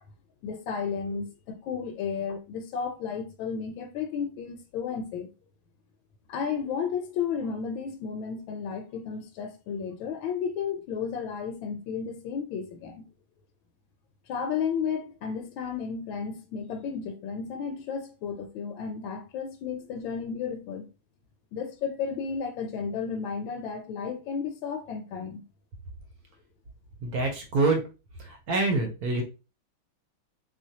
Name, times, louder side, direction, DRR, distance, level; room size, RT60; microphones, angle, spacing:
voice 1, 0.4-5.3 6.3-13.1 14.3-20.9 21.5-25.4, left 6 dB, 75° left, 1.3 m, -33 dB
voice 2, 27.0-27.8 28.2-29.2, right 3 dB, 65° right, 1.0 m, -26 dB
3.7 x 3.0 x 2.7 m
omnidirectional pair, 2.2 m